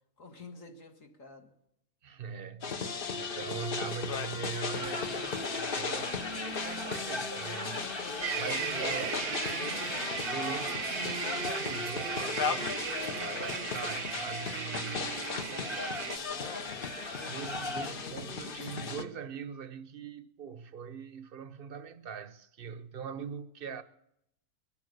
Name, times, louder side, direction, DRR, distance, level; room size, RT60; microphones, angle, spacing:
voice 1, 0.2-1.5 15.2-16.8, left 3 dB, 65° left, 2.2 m, -47 dB
voice 2, 2.0-15.3 17.2-23.8, right 6 dB, 45° right, 0.9 m, -42 dB
sound 1, 2.6-19.0, left 5 dB, 45° left, 1.0 m, -37 dB
sound 2, 4.7-17.9, left 2 dB, 20° left, 1.1 m, -40 dB
sound 3, 8.2-16.2, right 9 dB, 75° right, 1.2 m, -37 dB
22.5 x 8.7 x 6.6 m
omnidirectional pair, 1.5 m